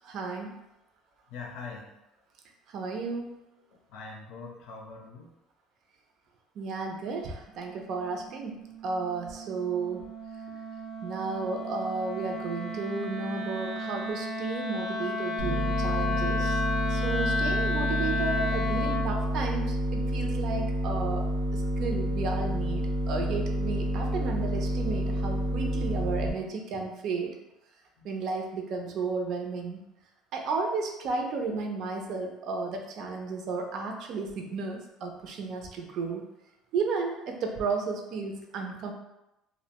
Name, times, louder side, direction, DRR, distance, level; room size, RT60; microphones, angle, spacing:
voice 1, 0.0-0.6 2.7-3.4 6.6-8.5 8.8-10.1 11.0-16.6 16.9-21.2 21.5-27.4 28.0-29.8 30.3-36.2 36.7-38.9, right 4 dB, 50° right, 3 dB, 0.4 m, -33 dB
voice 2, 1.3-1.9 3.7-5.3 28.0-28.1, left 4 dB, 65° left, 0 dB, 0.5 m, -43 dB
Wind instrument woodwind instrument, 7.6-19.1, left 2 dB, 5° left, 0.5 m, -33 dB
sound 1, 15.4-26.3, equal, 85° right, 0.7 m, -29 dB
2.4 x 2.1 x 2.8 m, 0.92 s
cardioid pair, 150°, 0 cm